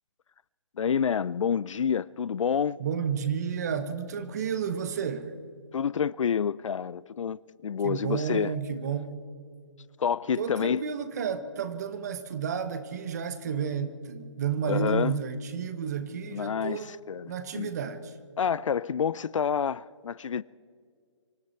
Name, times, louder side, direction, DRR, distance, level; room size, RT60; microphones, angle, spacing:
voice 1, 0.8-2.8 5.7-8.5 10.0-10.8 14.6-15.2 16.3-17.7 18.4-20.4, left 7 dB, 80° left, 0.4 m, -28 dB
voice 2, 2.8-5.3 7.8-9.1 10.4-16.9 17.3-18.2, right 7 dB, 35° right, 0.9 m, -31 dB
25.5 x 12.5 x 4.4 m
hypercardioid pair, 160°, 16 cm